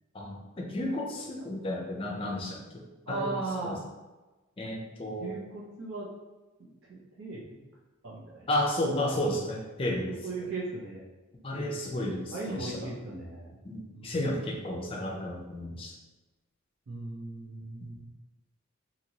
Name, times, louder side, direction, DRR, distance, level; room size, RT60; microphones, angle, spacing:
voice 1, 0.1-3.8 4.6-5.3 8.5-10.5 11.4-12.9 13.6-15.9, left 1 dB, 25° left, 0 dB, 0.4 m, -33 dB
voice 2, 3.1-3.8 5.2-6.1 6.6-7.6 8.0-8.5 10.1-11.0 11.5-11.7 12.2-13.6 13.9-14.4 14.8-15.1 16.9-18.1, right 3 dB, 75° right, -6 dB, 0.7 m, -38 dB
2.9 x 2.8 x 2.8 m, 1.1 s
head